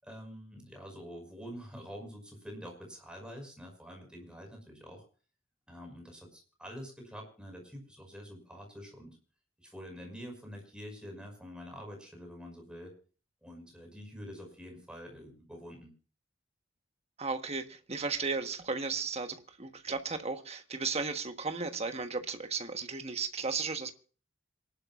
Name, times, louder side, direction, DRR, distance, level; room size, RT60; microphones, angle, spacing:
voice 1, 0.0-5.0 5.7-9.2 9.6-12.9 13.4-15.9, equal, 5° right, 5.5 m, -46 dB
voice 2, 17.2-23.9, right 4 dB, 35° right, 1.3 m, -35 dB
27.0 x 12.0 x 2.5 m
head